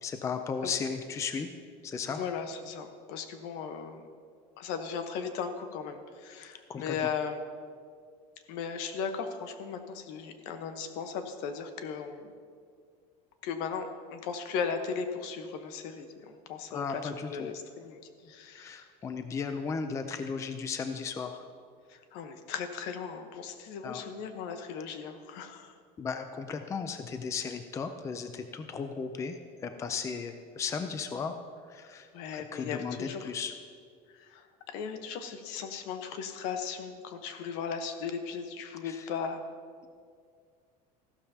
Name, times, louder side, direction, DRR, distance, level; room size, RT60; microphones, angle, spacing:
voice 1, 0.0-1.5 1.8-2.2 6.7-6.9 16.7-17.3 18.5-21.4 23.8-24.0 26.0-31.4 31.7-33.5 38.8-39.1, left 5 dB, 15° left, 8 dB, 0.4 m, -35 dB
voice 2, 2.1-4.0 4.6-7.4 8.5-12.3 13.4-17.0 17.3-18.0 18.3-18.8 21.9-25.8 32.1-33.3 34.1-34.5 34.7-39.4, left 6 dB, 70° left, 7 dB, 1.1 m, -37 dB
15.0 x 12.0 x 2.8 m, 2.1 s
cardioid pair, 160°, 18 cm